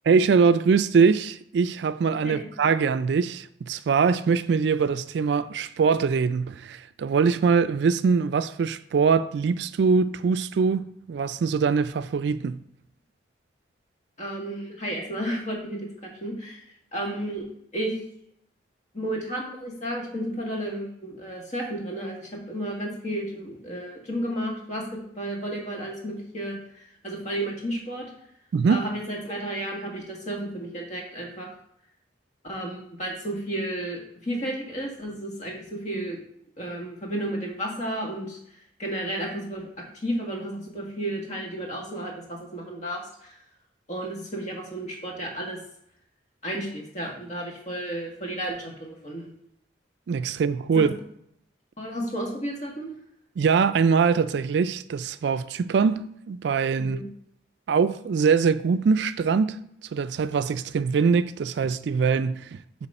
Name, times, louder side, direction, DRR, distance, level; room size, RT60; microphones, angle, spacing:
voice 1, 0.1-12.6 28.5-28.8 50.1-50.9 53.4-57.0 57.7-59.6 59.9-62.9, right 5 dB, 70° right, 0.3 m, -23 dB
voice 2, 14.2-15.8 16.2-16.6 16.9-17.4 17.7-17.9 18.9-28.1 28.7-31.5 32.4-36.2 36.6-38.4 38.8-39.7 40.0-43.3 43.9-45.6 46.4-49.3 50.7-50.8 51.8-52.9 56.8-57.1, right 1 dB, 40° left, 1.6 m, -32 dB
8.2 x 3.1 x 5.4 m
head